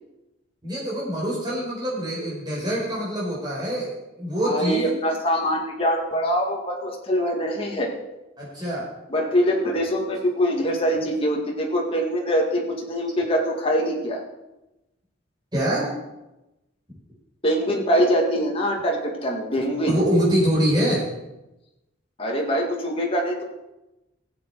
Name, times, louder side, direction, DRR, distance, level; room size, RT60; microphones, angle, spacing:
voice 1, 0.6-3.9 4.2-4.9 8.4-8.9 15.5-15.9 19.9-21.1, equal, 20° right, -5 dB, 4.6 m, -24 dB
voice 2, 4.4-7.9 9.1-14.2 17.4-20.0 22.2-23.4, equal, 30° left, -1 dB, 1.9 m, -23 dB
16.0 x 8.0 x 4.6 m, 0.97 s
head